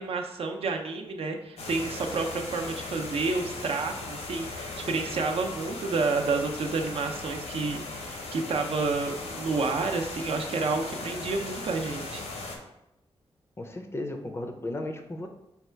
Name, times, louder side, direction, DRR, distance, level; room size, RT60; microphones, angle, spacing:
voice 1, 0.0-12.2, right 3 dB, 65° right, 3 dB, 0.5 m, -30 dB
sound 1, 1.6-12.6, left 3 dB, 90° left, 0.8 m, -38 dB
voice 2, 13.6-15.3, left 1 dB, 25° left, 4 dB, 0.4 m, -35 dB
5.2 x 2.3 x 4.4 m, 0.86 s
wide cardioid pair, 175°, 11 cm